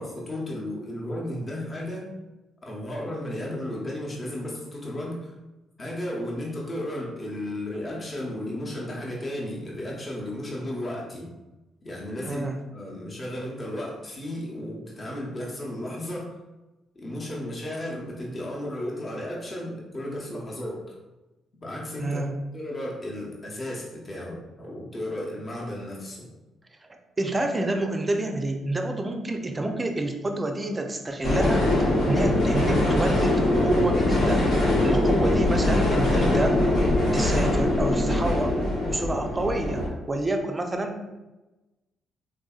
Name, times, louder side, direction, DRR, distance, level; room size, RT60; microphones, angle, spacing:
voice 1, 0.0-2.1 2.6-5.3 5.8-11.3 11.8-16.3 16.9-21.0 21.6-22.3 22.5-26.3, left 1 dB, 30° left, -3 dB, 0.8 m, -34 dB
voice 2, 12.2-12.6 22.0-22.4 27.2-31.7 32.0-36.6 36.8-38.5 38.9-41.1, right 2 dB, 20° right, 5 dB, 0.4 m, -28 dB
sound 1, 31.2-39.9, left 1 dB, 75° left, 0.9 m, -22 dB
3.5 x 2.6 x 2.4 m, 1.1 s
cardioid pair, 90°, 0 cm